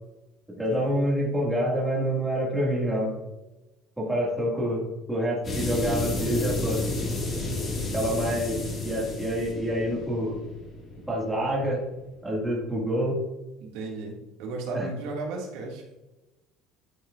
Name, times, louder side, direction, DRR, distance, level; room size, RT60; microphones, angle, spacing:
voice 1, 0.6-3.2 4.0-4.8 5.1-6.8 7.9-10.4 11.1-11.8 12.2-13.2 14.7-14.9, equal, 5° right, -4 dB, 1.9 m, -27 dB
sound 1, 5.4-11.9, left 2 dB, 25° left, 1.8 m, -31 dB
voice 2, 13.6-15.8, right 3 dB, 75° right, -1 dB, 2.0 m, -34 dB
10.5 x 5.9 x 2.5 m, 1.0 s
cardioid pair, 170°, 0 cm